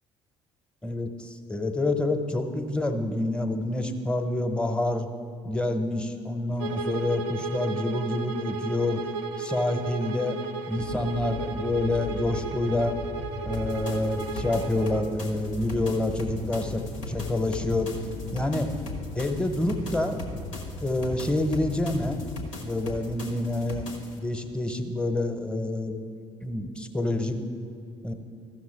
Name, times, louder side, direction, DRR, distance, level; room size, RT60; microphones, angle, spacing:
voice 1, 0.8-5.1 5.4-9.0 9.4-10.4 10.7-12.9 13.4-17.9 18.3-18.7 19.1-20.1 20.8-22.2 22.6-23.9 24.2-26.0 26.4-27.4 28.0-28.1, left 2 dB, 5° left, 6 dB, 0.9 m, -27 dB
Bowed string instrument, 6.6-15.1, right 4 dB, 70° right, 0.5 m, -34 dB
sound 1, 10.7-22.4, left 3 dB, 50° left, 0.8 m, -38 dB
sound 2, 13.5-24.2, left 1 dB, 80° left, 1.0 m, -40 dB
14.5 x 6.3 x 4.4 m, 2.6 s
figure-of-eight pair, 50°, 16 cm